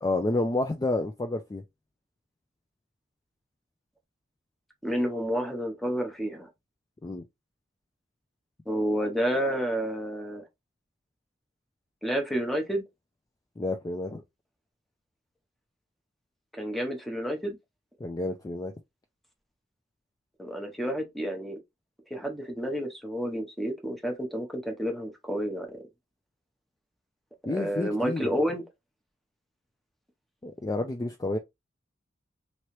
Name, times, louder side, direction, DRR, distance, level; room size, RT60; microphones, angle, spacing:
voice 1, 0.0-1.6 7.0-7.2 13.6-14.2 18.0-18.7 27.5-28.4 30.4-31.4, left 2 dB, 20° left, 0.3 m, -30 dB
voice 2, 4.8-6.5 8.7-10.5 12.0-12.9 16.5-17.6 20.4-21.6 22.1-25.8 27.5-28.6, equal, ahead, 0.7 m, -30 dB
3.1 x 2.7 x 3.0 m
head